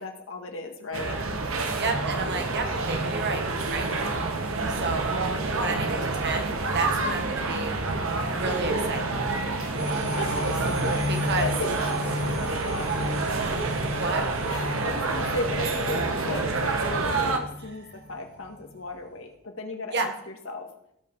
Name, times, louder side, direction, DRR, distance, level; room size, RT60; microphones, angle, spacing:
voice 1, 0.0-1.6 4.6-5.1 9.6-9.8 10.2-10.3 10.7-11.9 12.3-13.2 14.5-20.7, left 2 dB, 75° left, 3 dB, 1.9 m, -36 dB
sound 1, 0.9-17.4, right 3 dB, 90° right, 1.4 m, -28 dB
voice 2, 1.8-3.9 4.7-5.1 5.6-7.8 8.4-9.1 11.1-11.5 13.7-14.5 19.9-20.1, right 3 dB, 55° right, 5 dB, 1.6 m, -31 dB
sound 2, 9.7-18.1 18.5-18.6, left 1 dB, 75° right, 5.0 m, -34 dB
17.0 x 5.6 x 4.8 m, 0.77 s
head